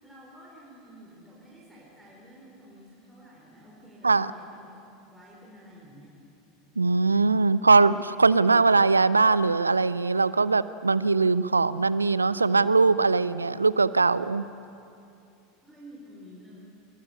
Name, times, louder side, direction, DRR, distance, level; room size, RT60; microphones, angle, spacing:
voice 1, 0.0-6.1 15.6-16.6, equal, 5° right, -5 dB, 5.3 m, -50 dB
voice 2, 6.8-14.5, right 3 dB, 80° right, 17 dB, 0.5 m, -21 dB
23.5 x 22.5 x 8.5 m, 2.6 s
figure-of-eight pair, 80°, 0 cm